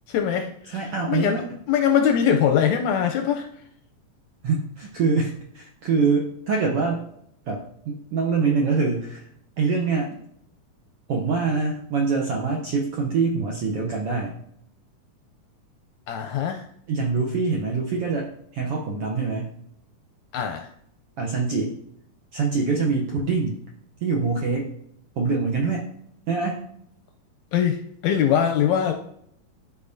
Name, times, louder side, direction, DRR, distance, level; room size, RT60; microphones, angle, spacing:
voice 1, 0.1-0.8 1.1-3.5 16.1-16.7 20.3-20.7 27.5-28.9, left 8 dB, 80° left, 5 dB, 1.7 m, -22 dB
voice 2, 0.7-1.4 4.4-7.0 7.4-9.3 9.6-10.2 11.1-14.3 16.9-19.6 21.2-21.7 22.3-23.6 24.0-24.7 25.2-25.8 26.3-26.6, right 4 dB, 70° right, -1 dB, 1.4 m, -24 dB
12.0 x 4.6 x 2.7 m, 0.71 s
omnidirectional pair, 3.7 m